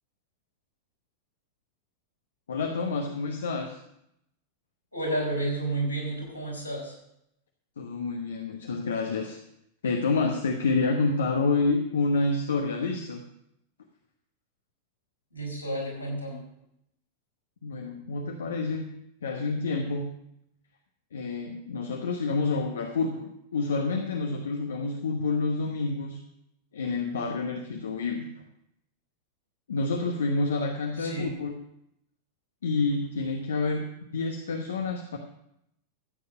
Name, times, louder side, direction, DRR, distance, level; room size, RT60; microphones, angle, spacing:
voice 1, 2.5-3.8 7.8-9.4 9.8-13.2 17.6-18.8 19.2-20.1 21.1-26.2 26.7-28.3 29.7-31.6 32.6-33.8 34.1-35.2, left 3 dB, 65° left, 4 dB, 1.1 m, -28 dB
voice 2, 4.9-6.9 15.3-16.4 31.0-31.4, right 1 dB, 85° left, -4 dB, 5.2 m, -31 dB
14.0 x 8.6 x 5.4 m, 0.80 s
figure-of-eight pair, 90°, 0 cm